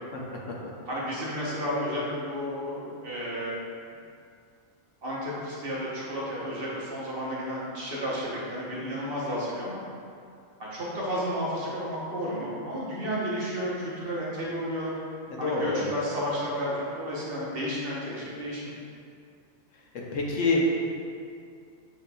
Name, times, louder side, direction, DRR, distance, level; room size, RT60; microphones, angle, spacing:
voice 1, 0.9-3.6 5.0-9.8 10.6-14.9 15.4-18.7, equal, 50° right, -6 dB, 1.0 m, -32 dB
voice 2, 15.3-15.9 20.1-20.6, left 3 dB, 75° left, -2 dB, 1.0 m, -26 dB
7.4 x 2.8 x 2.2 m, 2.3 s
omnidirectional pair, 1.3 m